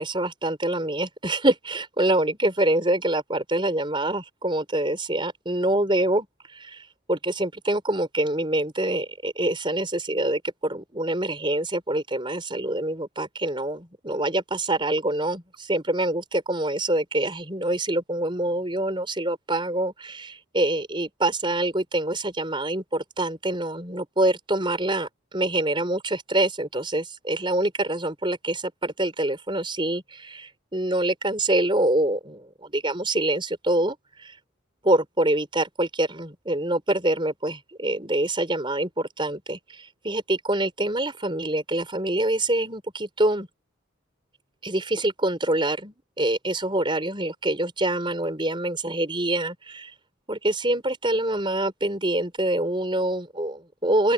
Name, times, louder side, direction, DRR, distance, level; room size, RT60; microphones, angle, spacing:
voice 1, 0.0-25.1 25.3-34.4 34.8-43.5 44.6-49.9 50.3-54.1, right 1 dB, 25° right, 4.6 m, -25 dB
open air
head